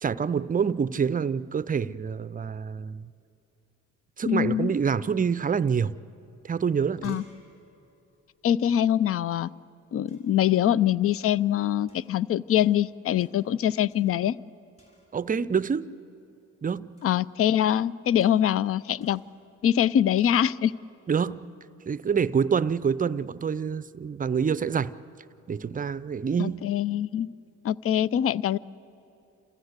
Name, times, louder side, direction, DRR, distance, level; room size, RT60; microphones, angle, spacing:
voice 1, 0.0-3.1 4.2-5.9 6.4-7.2 15.1-15.9 16.6-17.0 21.1-21.5 21.9-24.9 25.5-26.6, right 6 dB, 30° right, 16 dB, 0.5 m, -26 dB
voice 2, 4.3-4.7 7.0-7.2 8.4-9.5 9.9-14.4 17.0-19.2 19.6-20.7 26.4-27.3 27.6-28.6, left 10 dB, 50° left, 20 dB, 0.5 m, -24 dB
sound 1, 6.2-6.3 6.6-9.3 10.1-10.5 11.1-11.4 11.9-12.9 13.2-13.6 13.9-14.5 14.8-15.4 17.0-17.3 18.2-18.6 19.0-19.4 20.2-20.5, left 1 dB, 20° left, 5.6 m, -60 dB
28.0 x 14.5 x 8.1 m, 2.7 s
cardioid pair, 90°, 30 cm